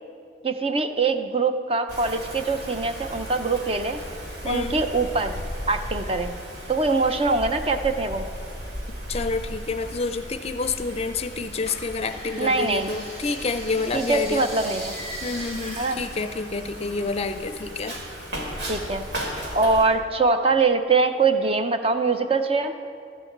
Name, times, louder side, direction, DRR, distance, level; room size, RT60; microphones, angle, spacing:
voice 1, 0.4-4.0 4.4-5.4 5.7-6.4 6.7-8.3 12.4-12.9 13.9-14.9 15.8-16.0 18.7-19.0 19.5-22.7, right 3 dB, 35° right, 8 dB, 0.6 m, -23 dB
Wind, 1.9-19.8, equal, 80° right, 2.7 m, -36 dB
voice 2, 4.4-4.8 9.1-14.5 15.2-18.0, left 3 dB, 35° left, 10 dB, 0.5 m, -28 dB
sound 1, 11.7-17.5 17.8-19.1 19.5-20.4 20.8-20.9, right 1 dB, 55° right, 3.4 m, -40 dB
13.5 x 7.6 x 7.9 m, 2.2 s
head